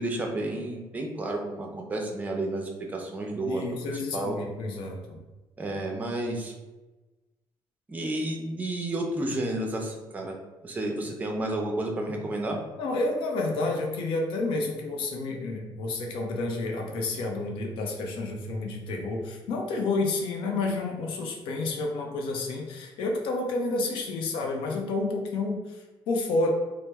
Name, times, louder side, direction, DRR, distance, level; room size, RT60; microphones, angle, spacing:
voice 1, 0.0-3.6 4.1-4.4 5.6-6.5 7.9-10.4 10.6-12.6, right 1 dB, 20° right, 1 dB, 0.5 m, -31 dB
voice 2, 3.4-5.2 12.8-26.5, left 2 dB, 90° left, 1 dB, 0.6 m, -30 dB
3.1 x 2.0 x 3.3 m, 1.1 s
cardioid pair, 140°, 9 cm